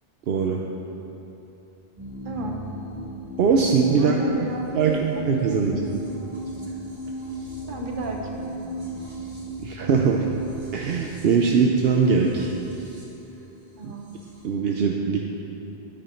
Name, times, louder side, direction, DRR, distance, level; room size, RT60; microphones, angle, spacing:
voice 1, 0.3-0.6 3.4-4.1 4.7-5.0 5.3-5.8 9.6-10.3 10.7-12.5 13.8-13.9 14.4-15.4, right 5 dB, 75° right, 1 dB, 0.9 m, -21 dB
sound 1, 2.0-14.4, right 1 dB, 25° right, 1.8 m, -37 dB
voice 2, 2.2-2.6 3.9-5.3 5.5-5.9 7.7-8.9 13.8-14.1, equal, 55° right, 1 dB, 1.3 m, -33 dB
10.0 x 10.0 x 4.4 m, 3.0 s
omnidirectional pair, 1.0 m